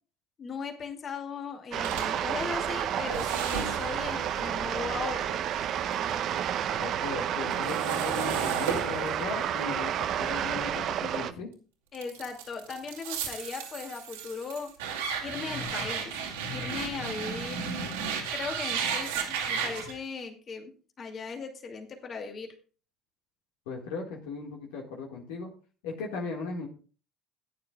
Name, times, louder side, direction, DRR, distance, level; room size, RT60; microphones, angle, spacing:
voice 1, 0.4-5.4 11.9-14.7 15.2-16.2 16.5-17.9 18.3-20.7 21.0-22.5, left 5 dB, 40° left, 4 dB, 2.3 m, -38 dB
sound 1, 1.7-11.3, right 10 dB, 55° right, 0.7 m, -31 dB
sound 2, 1.8-6.1 6.5-11.4 11.9-19.9, right 6 dB, 80° right, 2.2 m, -35 dB
voice 2, 6.7-11.5 23.7-25.5 25.8-26.7, left 4 dB, 75° left, 0 dB, 1.8 m, -37 dB
16.0 x 9.6 x 2.3 m, 0.37 s
hypercardioid pair, 65°, 0 cm